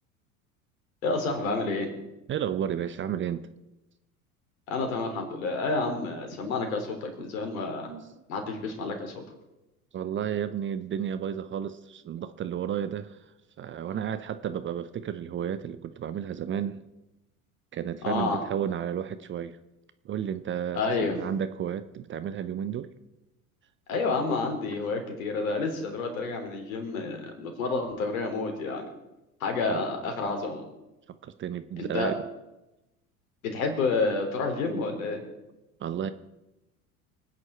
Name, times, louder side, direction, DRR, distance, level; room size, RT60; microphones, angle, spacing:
voice 1, 1.0-1.9 4.7-7.9 8.3-9.2 18.0-18.4 20.7-21.2 23.9-28.9 29.4-30.6 31.8-32.1 33.5-35.2, left 3 dB, 65° left, 4 dB, 3.7 m, -29 dB
voice 2, 2.3-3.4 7.2-7.3 7.8-8.1 9.9-13.2 13.6-16.8 17.7-19.6 20.0-22.9 29.7-29.8 31.1-32.1 35.8-36.1, right 9 dB, 25° right, 13 dB, 0.7 m, -32 dB
25.5 x 9.5 x 4.4 m, 0.96 s
figure-of-eight pair, 75°, 43 cm